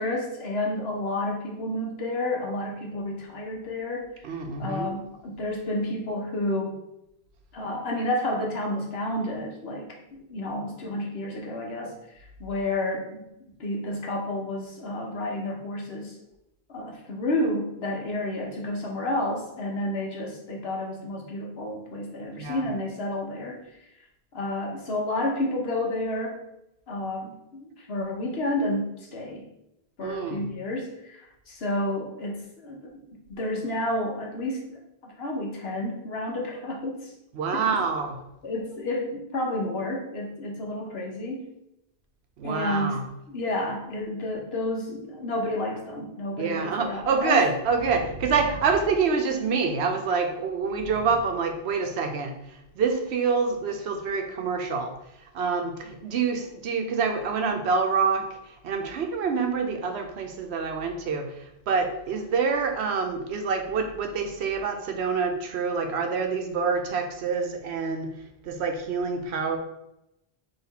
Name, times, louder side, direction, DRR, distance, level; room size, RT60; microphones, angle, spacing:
voice 1, 0.0-4.3 4.6-6.8 7.5-13.3 13.6-16.2 16.7-23.6 24.3-26.4 26.9-29.5 30.0-37.1 37.5-37.7 38.4-41.5 42.4-43.0 43.3-47.4, left 1 dB, 75° left, 0 dB, 1.2 m, -30 dB
voice 2, 4.2-4.9 22.4-22.6 30.0-30.4 37.3-38.2 42.4-43.0 46.4-52.3 52.8-54.9 55.3-58.3 58.6-61.4 61.7-68.1 68.4-69.6, right 5 dB, 90° right, 4 dB, 1.0 m, -26 dB
4.1 x 3.1 x 4.1 m, 0.84 s
omnidirectional pair, 1.1 m